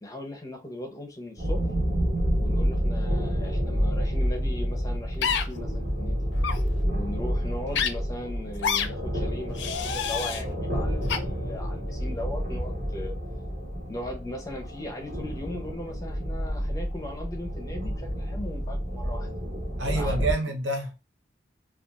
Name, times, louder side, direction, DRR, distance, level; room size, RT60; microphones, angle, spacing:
voice 1, 0.0-1.7 2.4-6.2 6.9-13.2 13.9-19.4 19.8-20.3, left 1 dB, 20° left, 0.5 m, -38 dB
sound 1, 1.4-20.3, equal, 45° right, 0.9 m, -29 dB
sound 2, 5.2-5.4 6.4-6.6 7.7-7.9 8.6-8.9 9.5-10.4 11.1-11.2, left 7 dB, 80° left, 0.4 m, -27 dB
voice 2, 19.8-21.0, right 2 dB, 85° right, 0.7 m, -28 dB
2.8 x 2.3 x 2.3 m
head